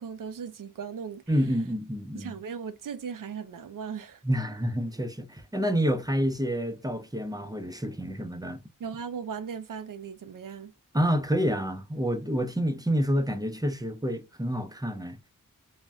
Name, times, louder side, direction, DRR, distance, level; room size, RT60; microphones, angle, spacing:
voice 1, 0.0-1.2 2.1-4.2 8.8-10.7, right 6 dB, 75° right, 0.5 m, -37 dB
voice 2, 1.3-2.3 4.2-8.6 10.9-15.3, equal, 10° right, 0.5 m, -28 dB
3.3 x 2.1 x 2.5 m
wide cardioid pair, 55°, 33 cm